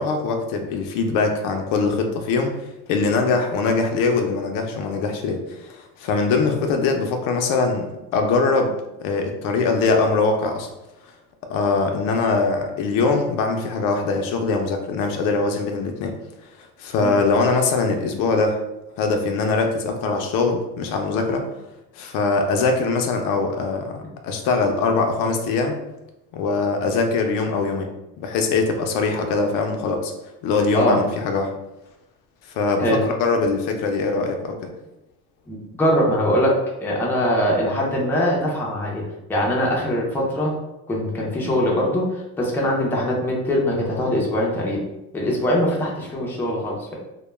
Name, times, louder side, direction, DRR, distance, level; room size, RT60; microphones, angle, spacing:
voice 1, 0.0-7.9 8.1-10.7 11.5-16.2 16.8-18.6 19.0-21.5 21.9-25.8 26.3-27.9 28.2-30.1 30.4-31.5 32.5-34.7, left 4 dB, 70° left, 4 dB, 0.5 m, -22 dB
voice 2, 30.7-31.1 32.8-33.0 35.5-36.5 36.8-39.0 39.3-40.5 40.9-44.8 45.1-47.0, equal, 5° left, -3 dB, 0.5 m, -22 dB
2.2 x 2.1 x 3.1 m, 0.93 s
cardioid pair, 130°, 34 cm